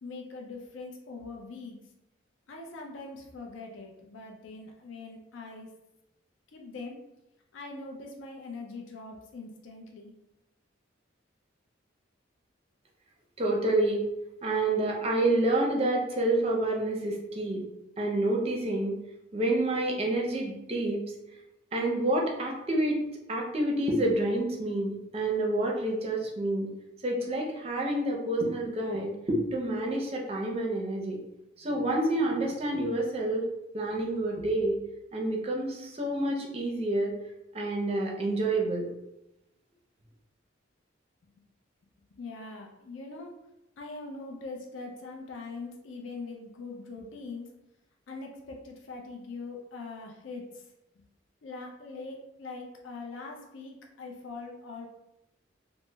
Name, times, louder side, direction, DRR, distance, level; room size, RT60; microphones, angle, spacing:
voice 1, 0.0-1.8 2.5-5.7 6.5-7.0 7.5-10.1 42.2-43.3 43.8-47.5 48.1-50.7 51.4-54.9, left 3 dB, 80° left, 1 dB, 0.4 m, -42 dB
voice 2, 13.4-14.0 14.4-17.6 18.0-19.0 19.3-21.0 21.7-23.0 23.3-26.7 27.0-31.2 31.6-33.5 33.7-34.8 35.1-37.1 37.5-38.9, right 1 dB, 30° right, 0 dB, 0.5 m, -28 dB
3.0 x 2.0 x 3.3 m, 0.89 s
head